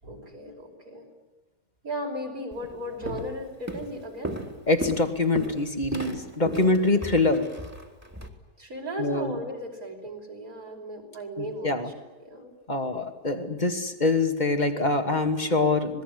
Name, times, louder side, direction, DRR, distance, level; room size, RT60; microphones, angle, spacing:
voice 1, 0.0-1.1 1.8-4.4 6.6-6.7 8.6-11.9 12.2-12.5, equal, 60° right, 2 dB, 6.1 m, -36 dB
Walk footsteps, 2.5-2.7 3.1-3.4 3.7-8.3, right 1 dB, 10° right, 3.0 m, -35 dB
voice 2, 4.7-7.5 9.0-9.4 11.4-11.9 12.7-16.0, left 3 dB, 25° left, 6 dB, 2.5 m, -24 dB
27.0 x 20.0 x 9.5 m, 1.1 s
omnidirectional pair, 1.7 m